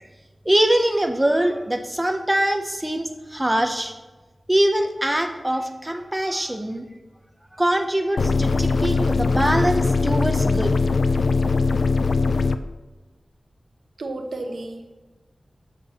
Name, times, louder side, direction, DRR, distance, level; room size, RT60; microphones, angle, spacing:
voice 1, 0.5-3.9 4.5-6.8 7.6-10.8, right 1 dB, 15° right, 6 dB, 0.7 m, -23 dB
sound 1, 8.2-12.6, left 4 dB, 70° left, 0.3 m, -21 dB
voice 2, 14.0-14.9, right 2 dB, 80° right, 4 dB, 0.9 m, -32 dB
8.2 x 6.5 x 2.9 m, 1.2 s
wide cardioid pair, 95°, 0 cm